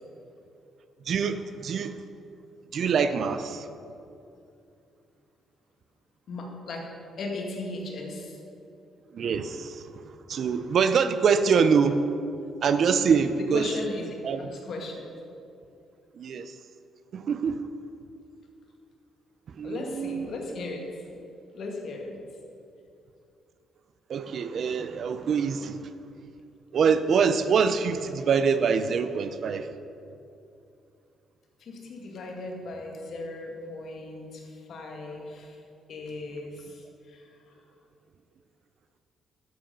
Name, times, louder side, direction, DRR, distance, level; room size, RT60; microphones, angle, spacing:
voice 1, 1.1-1.9 2.7-3.7 9.1-10.0 10.3-12.0 12.6-13.7 14.2-14.4 16.2-16.5 17.1-17.6 19.5-20.3 24.1-25.8 26.7-29.7, right 6 dB, 60° right, 11 dB, 0.6 m, -24 dB
voice 2, 6.3-6.9 7.2-8.4 13.4-14.1 14.4-15.1 19.6-20.9 21.5-22.2 31.6-35.6 35.9-37.5, left 2 dB, 65° left, 1 dB, 2.0 m, -37 dB
11.5 x 7.7 x 5.3 m, 2.6 s
cardioid pair, 90°, 0 cm